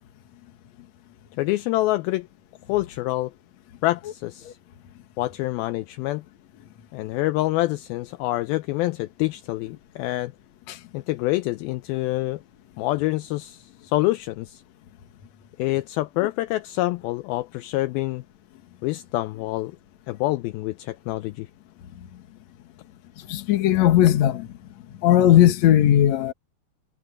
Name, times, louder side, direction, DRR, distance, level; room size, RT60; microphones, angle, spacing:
voice 1, 1.4-2.3 2.7-3.3 3.8-4.6 5.2-6.2 6.9-10.3 10.9-12.4 12.8-14.6 15.6-18.2 18.8-19.8 20.1-21.5, left 18 dB, 80° left, 2.3 m, -26 dB
voice 2, 23.3-24.5 25.0-26.3, left 12 dB, 55° left, 2.2 m, -17 dB
omnidirectional pair, 4.5 m